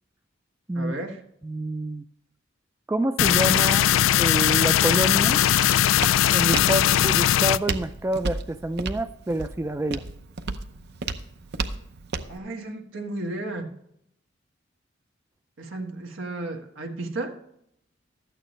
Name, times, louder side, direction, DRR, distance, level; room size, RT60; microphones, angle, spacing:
voice 1, 0.7-1.2 12.3-13.8 15.6-17.3, right 2 dB, 85° right, 3 dB, 1.5 m, -33 dB
voice 2, 1.4-2.0 2.9-3.9 4.2-5.4 6.3-10.0, right 1 dB, 15° right, 10 dB, 0.3 m, -27 dB
sound 1, 3.2-7.6, left 11 dB, 85° left, 0.3 m, -20 dB
Walk footsteps, 4.3-12.4, right 3 dB, 55° right, 0.7 m, -35 dB
13.0 x 9.0 x 3.2 m, 0.74 s
head